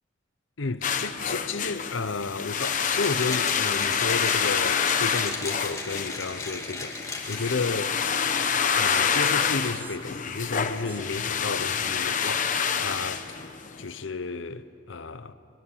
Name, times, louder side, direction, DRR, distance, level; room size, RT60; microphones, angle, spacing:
voice 1, 0.6-8.0 8.8-12.5 12.8-13.2 13.8-15.3, left 3 dB, 80° left, 0.9 m, -32 dB
sound 1, 0.8-13.8, left 7 dB, 45° left, 0.9 m, -27 dB
Mechanisms, 2.6-7.8, left 3 dB, 15° left, 2.2 m, -36 dB
sound 2, 7.4-7.5 8.2-8.6 9.0-9.2 9.6-10.2 10.8-11.3 12.2-12.8, right 3 dB, 10° right, 1.0 m, -47 dB
22.0 x 21.0 x 7.4 m
head